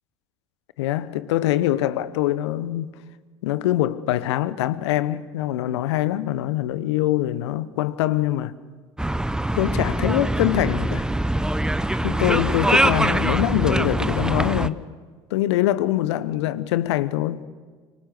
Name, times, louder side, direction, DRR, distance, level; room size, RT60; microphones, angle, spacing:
voice 1, 0.8-3.0 3.4-8.5 9.5-11.1 12.0-14.8 15.3-17.4, left 14 dB, 75° left, 1.0 m, -24 dB
sound 1, 9.0-14.7, right 1 dB, 5° right, 0.9 m, -23 dB
25.5 x 24.5 x 6.8 m
hypercardioid pair, 65°, 15 cm